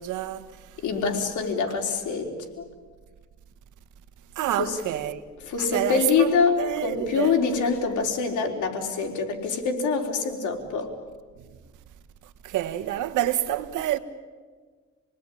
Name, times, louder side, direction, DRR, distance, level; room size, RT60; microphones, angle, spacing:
voice 1, 0.0-0.8 4.3-5.2 5.7-6.3 6.6-7.4 12.4-14.0, right 13 dB, 85° right, 1.5 m, -28 dB
voice 2, 0.8-2.7 4.6-4.8 5.5-10.9, left 5 dB, 75° left, 4.1 m, -25 dB
28.0 x 19.5 x 10.0 m
cardioid pair, 90°, 30 cm